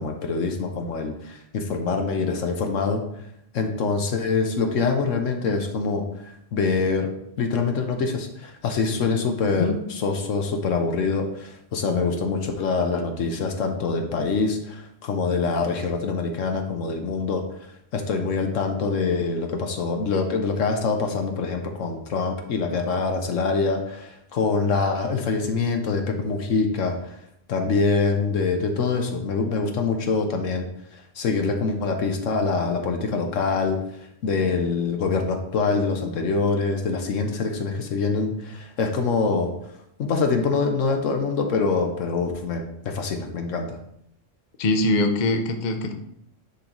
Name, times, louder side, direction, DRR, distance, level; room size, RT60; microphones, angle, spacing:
voice 1, 0.0-3.0 3.5-6.1 6.5-7.1 7.4-17.4 17.9-27.2 27.5-30.7 30.9-33.8 34.2-39.5 40.0-43.8, left 4 dB, 75° left, 4 dB, 1.2 m, -25 dB
voice 2, 44.6-45.9, left 2 dB, 45° left, 5 dB, 0.7 m, -22 dB
9.9 x 3.9 x 3.0 m, 0.76 s
omnidirectional pair, 1.3 m